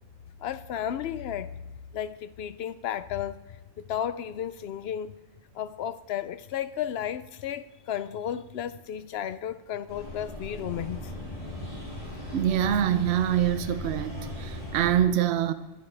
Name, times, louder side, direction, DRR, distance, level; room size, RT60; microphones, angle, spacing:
voice 1, 0.4-1.5 1.9-5.2 5.5-11.1, left 10 dB, 60° left, 0.7 m, -33 dB
sound 1, 9.9-15.0, left 1 dB, 40° left, 4.9 m, -38 dB
voice 2, 12.3-15.5, right 10 dB, 60° right, 0.9 m, -25 dB
23.5 x 9.9 x 3.4 m
omnidirectional pair, 1.4 m